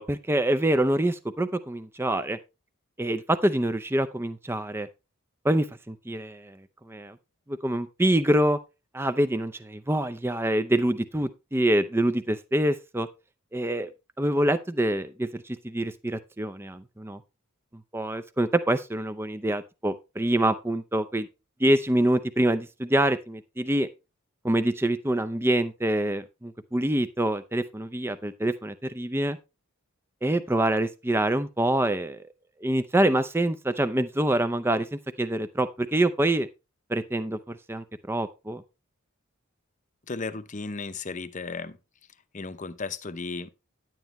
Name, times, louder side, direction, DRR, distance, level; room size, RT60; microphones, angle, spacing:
voice 1, 0.0-2.4 3.0-4.9 5.4-6.6 6.9-7.2 7.5-8.6 8.9-13.1 13.5-13.9 14.2-17.2 17.9-21.3 21.6-23.9 24.4-29.4 30.2-32.2 32.6-36.5 36.9-38.6, right 1 dB, 10° right, 0.5 m, -26 dB
voice 2, 40.1-41.8 42.3-43.5, left 4 dB, 35° left, 0.7 m, -34 dB
10.5 x 9.2 x 3.1 m
head